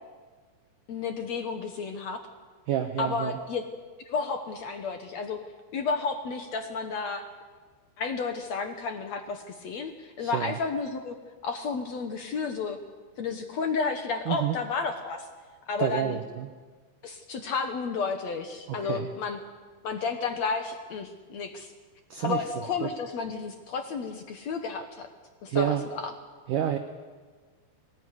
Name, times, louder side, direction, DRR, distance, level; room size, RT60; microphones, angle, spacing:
voice 1, 0.9-2.2 3.0-3.6 4.1-5.4 5.7-7.2 8.0-12.8 13.2-15.3 15.7-16.2 17.0-19.4 19.8-21.7 22.2-25.1 25.4-26.1, left 4 dB, 75° left, 6 dB, 1.6 m, -32 dB
voice 2, 2.7-3.4 10.2-10.5 14.3-14.6 15.8-16.5 18.7-19.1 22.1-22.4 22.8-22.9 25.5-25.8 26.5-26.8, right 10 dB, 75° right, 6 dB, 2.0 m, -28 dB
21.5 x 19.0 x 9.7 m, 1.4 s
omnidirectional pair, 5.1 m